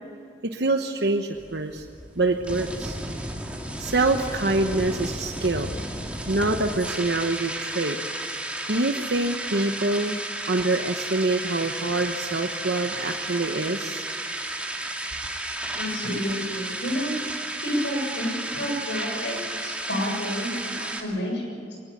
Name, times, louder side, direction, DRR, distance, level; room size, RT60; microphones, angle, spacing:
voice 1, 0.4-1.8 2.2-3.0 3.8-5.7 6.3-8.0 8.7-10.2 10.5-14.0, right 2 dB, 65° right, 5 dB, 1.1 m, -25 dB
sound 1, 1.3-21.0, right 1 dB, 5° right, 2.1 m, -33 dB
voice 2, 15.8-17.1 17.6-21.8, equal, 85° left, 1 dB, 7.2 m, -30 dB
22.0 x 19.5 x 8.7 m, 2.5 s
head